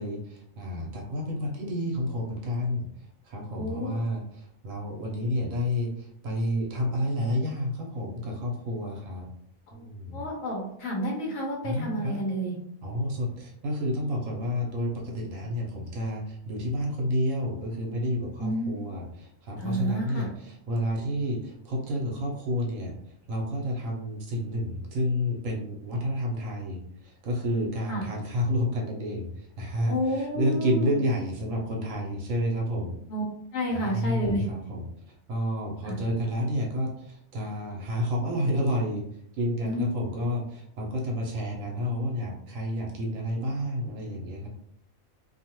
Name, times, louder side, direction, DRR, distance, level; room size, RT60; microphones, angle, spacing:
voice 1, 0.0-2.9 3.2-9.3 9.7-10.3 11.6-12.2 12.8-22.9 23.3-33.0 33.7-39.1 39.4-44.5, equal, 75° right, -1 dB, 1.1 m, -30 dB
voice 2, 3.6-3.9 9.7-9.9 10.1-12.6 18.4-18.7 19.6-20.3 27.9-28.0 29.9-31.0 33.1-33.2 33.5-34.5 35.9-36.0 39.6-39.9, equal, 75° left, -1 dB, 1.0 m, -30 dB
2.6 x 2.3 x 2.9 m, 0.70 s
omnidirectional pair, 1.4 m